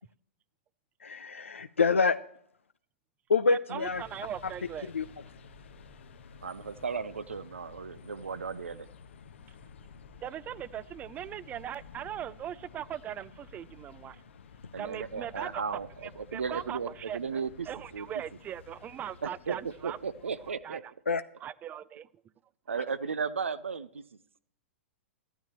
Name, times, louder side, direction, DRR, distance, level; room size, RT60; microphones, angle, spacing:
voice 1, 1.0-2.2 3.3-4.0 4.9-5.0 21.1-21.2, left 4 dB, 85° left, 11 dB, 0.6 m, -26 dB
voice 2, 3.5-4.9 10.2-14.2 14.8-17.4 17.7-20.0 20.6-20.8 21.4-22.1 22.7-22.8, right 10 dB, 20° right, 19 dB, 0.4 m, -40 dB
sound 1, 3.8-20.5, left 5 dB, 70° left, 1.2 m, -52 dB
voice 3, 6.4-8.9 14.7-18.1 19.2-20.8 21.1-21.2 22.7-24.0, right 5 dB, 80° right, 16 dB, 0.7 m, -35 dB
15.0 x 12.0 x 3.0 m, 0.66 s
figure-of-eight pair, 110°, 7 cm